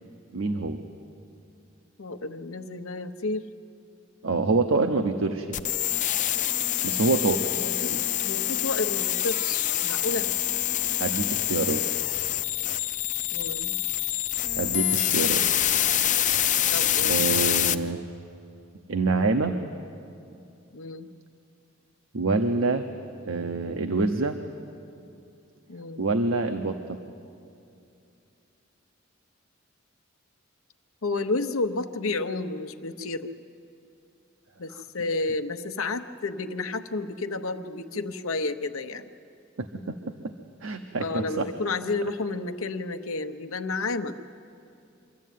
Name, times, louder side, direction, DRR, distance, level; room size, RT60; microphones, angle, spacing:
voice 1, 0.3-0.8 4.2-5.6 6.8-7.5 11.0-11.9 14.6-15.4 17.0-18.0 18.9-19.6 22.1-22.8 23.2-24.4 26.0-27.0 39.6-40.0 40.2-40.3 40.6-41.5, right 3 dB, 75° right, 6 dB, 0.9 m, -26 dB
voice 2, 2.0-3.5 7.6-7.9 8.2-10.3 13.3-13.8 16.7-17.2 20.7-21.1 25.7-26.1 31.0-33.3 34.6-39.1 41.0-44.2, left 3 dB, 90° left, 9 dB, 0.9 m, -31 dB
sound 1, 5.5-17.7, left 12 dB, 40° left, 0.5 m, -26 dB
25.0 x 14.0 x 9.3 m, 2.6 s
head